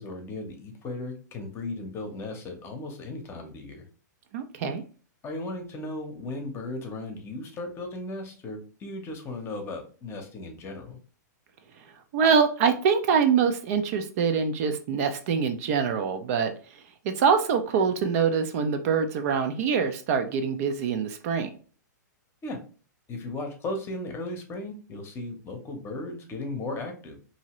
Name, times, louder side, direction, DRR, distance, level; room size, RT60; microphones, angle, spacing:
voice 1, 0.0-3.8 5.2-11.0 22.4-22.6 23.1-27.2, left 2 dB, 25° left, 4 dB, 0.8 m, -36 dB
voice 2, 4.3-4.8 12.1-16.5 17.0-21.5, right 6 dB, 50° right, 7 dB, 0.5 m, -24 dB
2.8 x 2.7 x 3.0 m, 0.39 s
hypercardioid pair, 120°, 10 cm